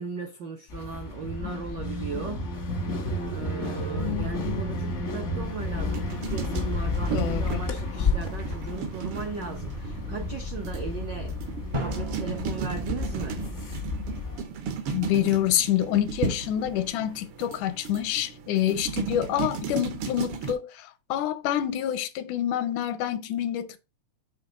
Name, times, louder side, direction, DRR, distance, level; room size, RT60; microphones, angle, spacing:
voice 1, 0.0-2.4 3.2-11.4 11.8-13.4, right 5 dB, 90° right, 0.9 m, -37 dB
sound 1, 0.7-14.4, left 3 dB, 60° left, 0.7 m, -31 dB
sound 2, 5.6-20.5, right 6 dB, 70° right, 1.4 m, -35 dB
voice 2, 7.1-7.6 14.9-23.8, left 11 dB, 85° left, 2.2 m, -27 dB
Drum, 11.7-14.4, right 2 dB, 45° right, 0.6 m, -38 dB
6.7 x 3.4 x 4.8 m
omnidirectional pair, 3.4 m